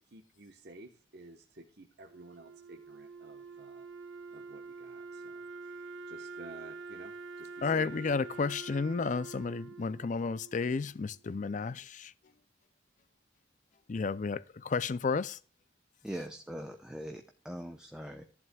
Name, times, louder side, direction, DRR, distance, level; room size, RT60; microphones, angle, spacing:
voice 1, 0.0-3.9 4.3-7.9, right 2 dB, 55° right, 1.1 m, -52 dB
Wind instrument woodwind instrument, 2.1-11.2, right 4 dB, 75° right, 0.8 m, -46 dB
voice 2, 7.6-12.1 13.9-15.4, left 4 dB, 40° left, 0.4 m, -32 dB
voice 3, 16.0-18.2, equal, 5° right, 0.8 m, -41 dB
15.0 x 11.0 x 2.3 m
head